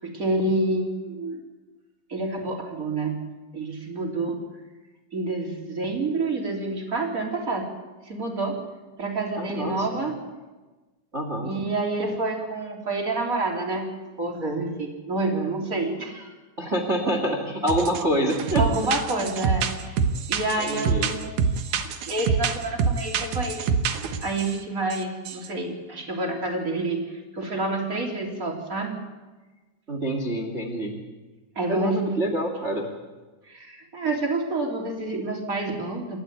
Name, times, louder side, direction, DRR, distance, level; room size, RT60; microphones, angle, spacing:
voice 1, 0.0-1.4 2.1-3.2 3.5-4.4 5.1-7.7 8.1-8.5 9.0-10.1 11.4-13.9 14.2-16.3 18.6-21.4 21.7-23.6 24.2-29.0 31.5-32.1 33.5-36.2, right 2 dB, 20° right, 0 dB, 3.2 m, -28 dB
voice 2, 9.4-10.0 11.1-11.5 16.6-18.6 20.6-21.1 29.9-31.0 31.7-32.9, right 1 dB, 45° right, 4 dB, 0.9 m, -26 dB
sound 1, 17.7-18.0 18.3-24.5 24.9-25.0 25.3-25.5, right 6 dB, 80° right, 1.7 m, -26 dB
28.5 x 12.5 x 9.5 m, 1.2 s
omnidirectional pair, 5.5 m